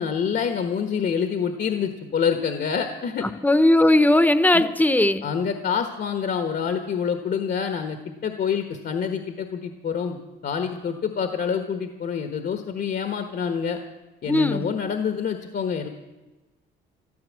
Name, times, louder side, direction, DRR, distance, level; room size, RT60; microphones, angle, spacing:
voice 1, 0.0-3.3 4.5-4.7 5.2-8.0 8.2-13.8 14.2-15.9, left 7 dB, 55° left, 7 dB, 1.4 m, -27 dB
voice 2, 3.4-5.2 14.3-14.6, left 1 dB, 10° left, 12 dB, 1.0 m, -18 dB
13.5 x 12.5 x 7.5 m, 1.2 s
cardioid pair, 90°, 20 cm